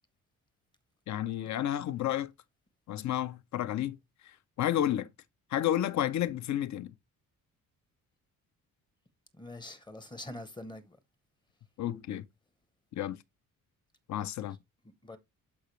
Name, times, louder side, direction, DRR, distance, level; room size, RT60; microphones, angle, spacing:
voice 1, 1.1-2.3 2.9-4.0 4.6-5.1 5.5-6.9 11.8-12.3 12.9-13.2 14.1-14.6, left 12 dB, 55° left, 0.6 m, -31 dB
voice 2, 9.3-11.0 14.1-14.5 15.0-15.2, left 1 dB, 15° left, 0.7 m, -45 dB
11.5 x 4.9 x 3.1 m
cardioid pair, 180°, 34 cm